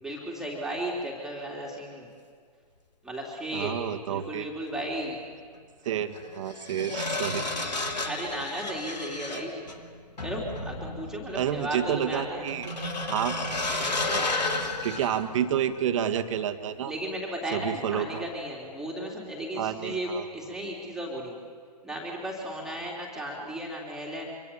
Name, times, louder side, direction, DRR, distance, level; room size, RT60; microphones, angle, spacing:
voice 1, 0.0-2.1 3.0-3.7 4.1-5.2 8.1-9.6 10.2-12.4 16.9-20.1 20.3-21.3 21.8-24.2, right 1 dB, 5° right, -3 dB, 3.3 m, -35 dB
voice 2, 3.5-4.5 5.9-7.5 11.3-12.7 13.1-13.6 14.0-14.3 14.6-16.9 17.5-18.3 19.5-20.6, right 9 dB, 50° right, 7 dB, 1.9 m, -30 dB
sound 1, 4.7-4.9 6.1-15.8 16.2-16.4, left 2 dB, 85° left, 2.9 m, -33 dB
26.5 x 25.0 x 7.3 m, 2.1 s
hypercardioid pair, 130°, 21 cm